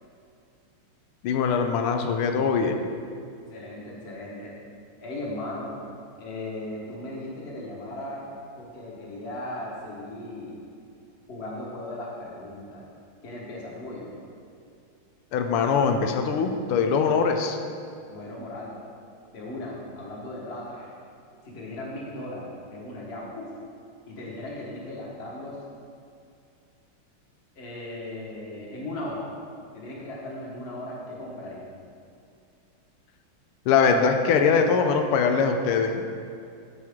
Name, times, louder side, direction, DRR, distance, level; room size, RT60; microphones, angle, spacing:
voice 1, 1.2-2.9 15.3-17.6 33.7-35.9, left 5 dB, 90° left, 5 dB, 1.5 m, -22 dB
voice 2, 3.5-4.5 5.0-5.7 6.2-8.2 8.6-10.6 11.3-12.8 13.2-14.1 18.1-18.7 19.3-20.9 21.4-23.5 24.1-25.6 27.6-29.2 29.7-31.6, left 1 dB, 35° left, -4 dB, 1.3 m, -37 dB
12.5 x 4.5 x 3.6 m, 2.5 s
omnidirectional pair, 2.3 m